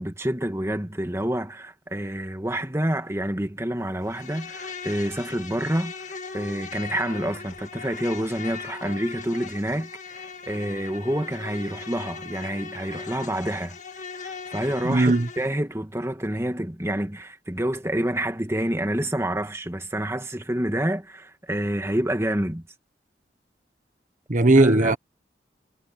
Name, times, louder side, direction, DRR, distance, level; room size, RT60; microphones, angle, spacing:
voice 1, 0.0-5.9 6.3-13.8 14.3-22.6 24.6-25.0, right 1 dB, 15° right, 1.8 m, -28 dB
Insect, 4.0-15.5, left 5 dB, 40° left, 1.8 m, -39 dB
voice 2, 14.8-15.3 24.3-25.0, right 2 dB, 45° right, 1.1 m, -17 dB
head